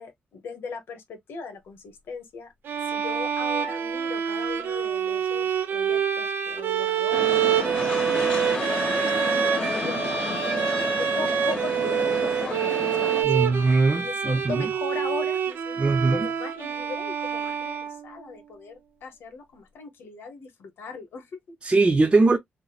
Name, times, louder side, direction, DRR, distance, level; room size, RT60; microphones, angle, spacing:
voice 1, 0.0-2.5 2.8-10.6 11.0-21.5, left 4 dB, 80° left, 1.0 m, -39 dB
sound 1, 2.6-18.3, right 8 dB, 75° right, 0.8 m, -26 dB
sound 2, 7.1-13.2, left 1 dB, 30° left, 1.9 m, -30 dB
voice 2, 13.2-14.6 15.8-16.3 21.6-22.4, right 3 dB, 25° right, 0.6 m, -21 dB
4.0 x 2.0 x 2.3 m
cardioid pair, 85°, 4 cm